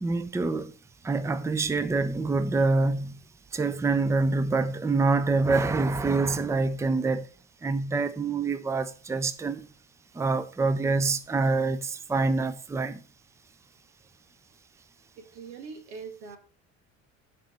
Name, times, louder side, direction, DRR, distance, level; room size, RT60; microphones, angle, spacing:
voice 1, 0.0-0.7 1.0-3.1 3.5-7.3 7.6-9.7 10.2-13.0, right 3 dB, 10° right, 0.5 m, -26 dB
voice 2, 15.2-16.4, right 5 dB, 90° right, 1.7 m, -42 dB
6.7 x 4.4 x 6.7 m
supercardioid pair, 85°, 34 cm